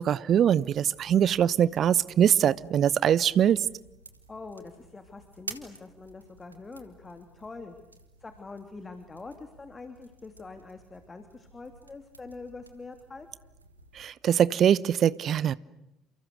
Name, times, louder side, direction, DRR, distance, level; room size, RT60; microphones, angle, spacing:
voice 1, 0.0-3.6 13.9-15.5, right 9 dB, 45° right, 0.9 m, -23 dB
sound 1, 0.6-14.1, right 3 dB, 85° right, 1.8 m, -51 dB
voice 2, 4.3-7.8 8.2-13.3, left 3 dB, 25° left, 3.0 m, -44 dB
30.0 x 28.5 x 6.6 m
figure-of-eight pair, 55°, 0 cm